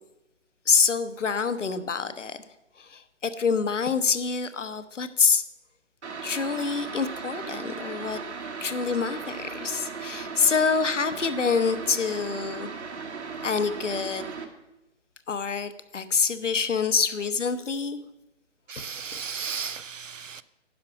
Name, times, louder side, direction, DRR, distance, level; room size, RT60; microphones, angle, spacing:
voice 1, 0.7-2.4 2.8-5.4 6.2-8.2 8.6-12.7 13.4-14.3 15.3-18.0 18.8-18.9 19.1-19.2, left 5 dB, 75° left, 11 dB, 0.9 m, -26 dB
sound 1, 6.0-14.5, right 5 dB, 65° right, 1.4 m, -37 dB
voice 2, 18.7-20.4, right 6 dB, 85° right, 16 dB, 0.6 m, -35 dB
10.5 x 6.0 x 5.8 m, 0.95 s
figure-of-eight pair, 135°, 37 cm